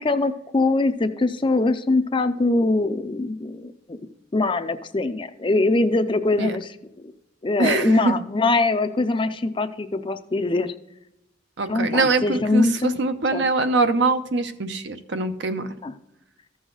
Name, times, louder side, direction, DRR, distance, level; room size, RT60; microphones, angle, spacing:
voice 1, 0.0-4.0 4.3-6.8 7.4-10.7 11.7-13.0 13.3-13.4 15.8-15.9, left 2 dB, 25° left, 10 dB, 0.5 m, -22 dB
voice 2, 7.6-8.1 11.6-15.7, right 3 dB, 60° right, 8 dB, 0.7 m, -23 dB
14.0 x 6.3 x 3.9 m, 0.88 s
head